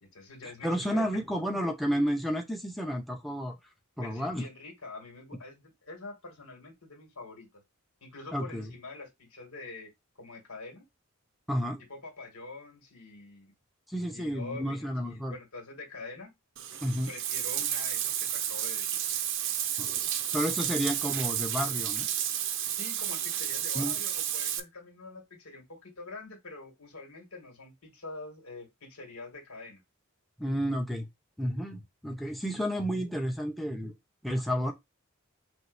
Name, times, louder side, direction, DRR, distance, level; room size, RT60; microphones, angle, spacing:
voice 1, 0.0-1.2 4.0-7.5 8.0-9.9 10.2-10.9 11.9-13.5 14.1-16.3 17.1-19.0 22.7-29.8, left 3 dB, 90° left, 2.2 m, -45 dB
voice 2, 0.6-3.6 4.0-4.5 8.3-8.7 11.5-11.8 13.9-15.4 16.8-17.1 19.8-19.9 20.3-22.1 23.7-23.9 30.4-31.1 31.4-33.9 34.2-34.7, equal, ahead, 0.6 m, -31 dB
Bathtub (filling or washing), 16.6-24.6, right 10 dB, 60° right, 0.6 m, -31 dB
6.0 x 2.8 x 2.6 m
head